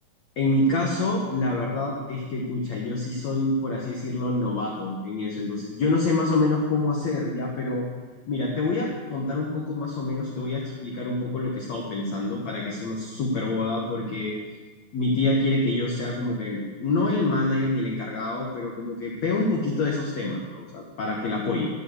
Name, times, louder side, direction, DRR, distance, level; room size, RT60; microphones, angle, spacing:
voice 1, 0.4-7.9 8.3-14.3 14.9-21.7, left 2 dB, 80° left, -2 dB, 1.5 m, -26 dB
13.0 x 5.4 x 7.8 m, 1.4 s
omnidirectional pair, 5.0 m